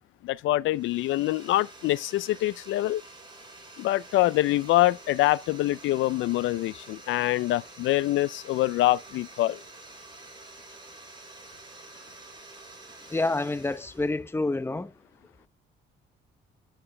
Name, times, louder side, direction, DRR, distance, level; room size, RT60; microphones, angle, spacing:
voice 1, 0.2-3.0 3.8-9.6, left 16 dB, 80° left, 0.4 m, -25 dB
sound 1, 0.7-14.2, right 2 dB, 20° right, 5.8 m, -48 dB
voice 2, 13.1-14.9, left 2 dB, 10° left, 0.8 m, -28 dB
8.8 x 8.7 x 3.3 m
cardioid pair, 90°, 20 cm